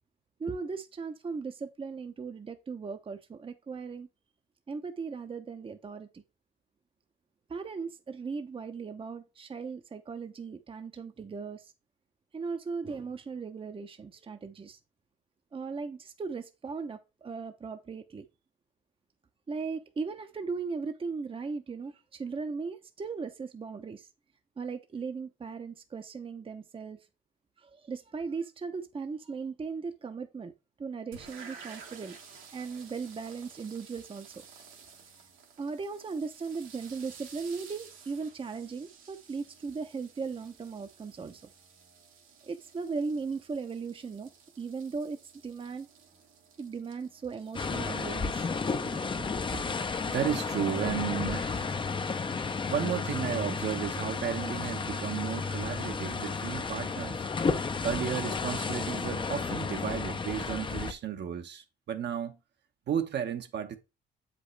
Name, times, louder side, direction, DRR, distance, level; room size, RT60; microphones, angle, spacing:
voice 1, 0.4-4.1 4.7-6.2 7.5-11.7 12.3-14.8 15.5-18.3 19.5-24.1 24.6-27.0 27.6-30.5 30.8-32.2 32.5-34.3 34.6-34.7 35.6-41.4 42.4-44.3 44.6-45.9 46.6-49.3 49.5-49.6, right 5 dB, 25° right, 0.7 m, -38 dB
sound 1, 31.1-49.0, right 6 dB, 85° right, 1.8 m, -53 dB
sound 2, 47.5-60.9, left 4 dB, 25° left, 0.6 m, -32 dB
voice 2, 50.1-51.7 52.7-57.3 57.8-62.4 62.9-63.8, right 9 dB, 60° right, 1.0 m, -33 dB
7.6 x 5.1 x 3.2 m
cardioid pair, 90°, 20 cm